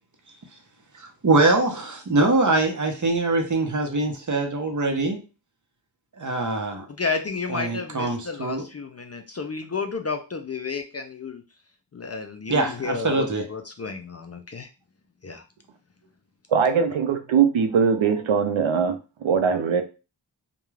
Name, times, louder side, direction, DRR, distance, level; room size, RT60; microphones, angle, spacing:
voice 1, 1.0-5.2 6.2-6.9 7.5-8.6 12.5-13.5, right 2 dB, 40° right, 0.7 m, -23 dB
voice 2, 6.9-11.4 11.9-14.7 15.2-15.4, left 4 dB, 35° left, 0.4 m, -32 dB
voice 3, 16.5-19.8, right 6 dB, 80° right, 0.5 m, -21 dB
2.3 x 2.2 x 3.1 m
wide cardioid pair, 50°, 47 cm